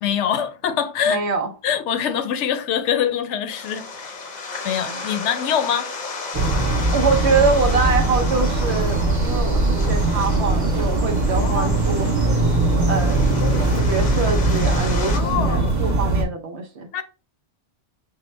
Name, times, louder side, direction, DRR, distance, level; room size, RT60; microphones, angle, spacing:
voice 1, 0.0-1.2 1.6-4.2 4.6-5.9 11.3-11.8 13.3-13.5 15.1-15.8 16.9-17.0, left 8 dB, 80° left, 0.9 m, -24 dB
voice 2, 1.1-1.5 4.9-5.0 6.9-12.1 12.9-13.2 13.7-16.9, right 4 dB, 70° right, 1.0 m, -24 dB
sound 1, 3.5-15.2, left 4 dB, 45° left, 0.7 m, -34 dB
sound 2, 6.3-16.2, right 2 dB, 20° right, 0.7 m, -20 dB
5.7 x 2.1 x 3.1 m
omnidirectional pair, 1.2 m